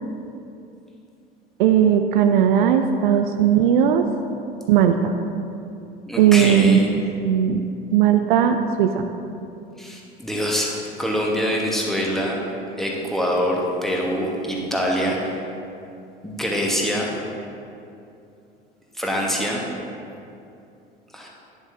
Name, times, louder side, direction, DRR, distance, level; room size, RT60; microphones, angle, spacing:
voice 1, 1.6-4.0 4.7-5.1 6.2-6.8 7.2-7.7 7.9-9.1, right 9 dB, 60° right, 7 dB, 0.4 m, -17 dB
voice 2, 6.1-6.9 9.8-12.4 12.8-15.3 16.2-17.2 18.9-19.6 21.1-21.3, equal, ahead, -3 dB, 1.3 m, -24 dB
10.5 x 7.3 x 2.7 m, 2.7 s
figure-of-eight pair, 70°, 29 cm